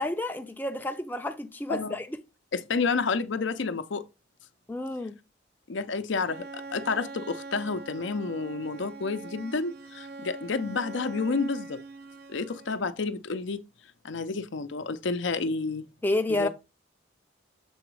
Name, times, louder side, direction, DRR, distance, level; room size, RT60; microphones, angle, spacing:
voice 1, 0.0-2.2 4.7-5.1 16.0-16.5, left 2 dB, 10° left, 0.5 m, -30 dB
voice 2, 2.5-4.0 5.7-11.8 12.3-13.6 14.0-15.8 16.4-16.5, left 4 dB, 70° left, 0.6 m, -30 dB
Bowed string instrument, 6.2-13.0, right 3 dB, 50° right, 0.5 m, -43 dB
7.1 x 3.9 x 4.7 m
head